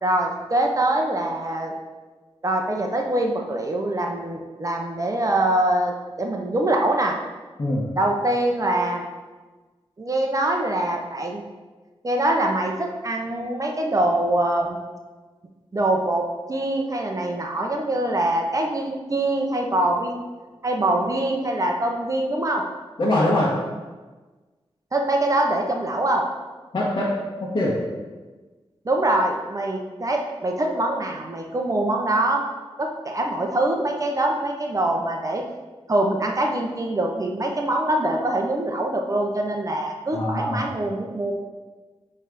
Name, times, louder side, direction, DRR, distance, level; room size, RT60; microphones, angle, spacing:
voice 1, 0.0-1.7 2.4-7.2 8.0-9.0 10.0-11.4 12.0-14.8 15.7-20.2 20.6-22.6 24.9-26.2 28.8-32.4 32.8-35.4 35.9-41.3, right 1 dB, 35° right, 1 dB, 0.7 m, -24 dB
voice 2, 23.0-23.5 26.7-27.1 27.4-27.7 40.1-40.7, left 1 dB, 45° left, -7 dB, 1.4 m, -22 dB
8.2 x 3.3 x 5.2 m, 1.3 s
wide cardioid pair, 115°, 10 cm